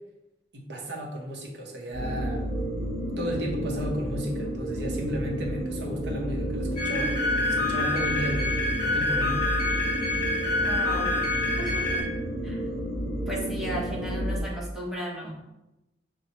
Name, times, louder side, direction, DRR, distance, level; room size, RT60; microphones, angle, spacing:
voice 1, 0.5-2.4 3.2-9.4, right 1 dB, 75° right, 1 dB, 0.8 m, -34 dB
sound 1, 1.9-14.4, right 1 dB, 20° right, 1.4 m, -31 dB
sound 2, 6.8-12.0, left 3 dB, 30° left, 1.4 m, -27 dB
voice 2, 10.5-11.1 11.6-12.1 12.4-12.7 13.3-15.4, right 1 dB, ahead, -5 dB, 0.9 m, -35 dB
5.6 x 2.2 x 2.9 m, 0.94 s
head